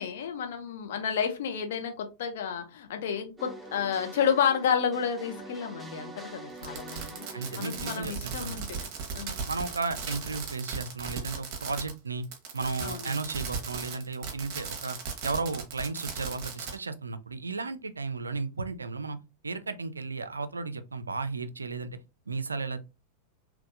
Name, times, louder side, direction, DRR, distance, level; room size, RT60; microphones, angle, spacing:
voice 1, 0.0-7.3 7.6-9.4 12.8-13.2, left 7 dB, 55° left, 0.7 m, -31 dB
sound 1, 3.4-9.1, right 2 dB, 5° right, 0.6 m, -46 dB
Fireworks, 6.6-12.0 12.2-16.7, right 5 dB, 40° right, 1.0 m, -37 dB
voice 2, 7.3-8.6 9.5-12.3 12.5-15.0 15.2-19.2 19.4-21.9 22.3-22.8, right 3 dB, 75° right, 0.3 m, -34 dB
3.4 x 3.0 x 2.4 m
figure-of-eight pair, 90°, 0 cm